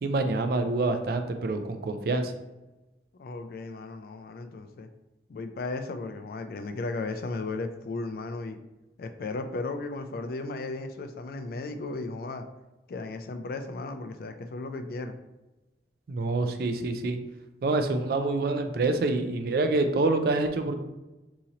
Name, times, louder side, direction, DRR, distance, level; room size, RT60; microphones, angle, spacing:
voice 1, 0.0-2.3 16.1-17.2 17.6-20.8, right 2 dB, 55° right, 7 dB, 0.4 m, -26 dB
voice 2, 3.2-4.9 5.3-8.6 9.0-12.5 12.9-15.2, left 3 dB, 55° left, 7 dB, 0.3 m, -35 dB
2.9 x 2.8 x 3.8 m, 1.0 s
head